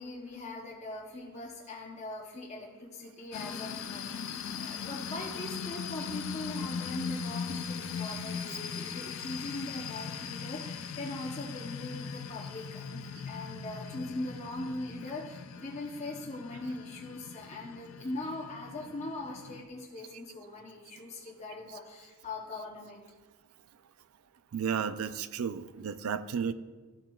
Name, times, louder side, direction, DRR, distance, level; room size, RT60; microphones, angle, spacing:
voice 1, 0.0-23.0, left 2 dB, 30° left, -2 dB, 0.8 m, -41 dB
sound 1, 3.3-19.6, left 6 dB, 65° left, 0.4 m, -40 dB
voice 2, 24.5-26.5, right 7 dB, 80° right, 14 dB, 0.4 m, -33 dB
13.0 x 7.4 x 2.3 m, 1.3 s
head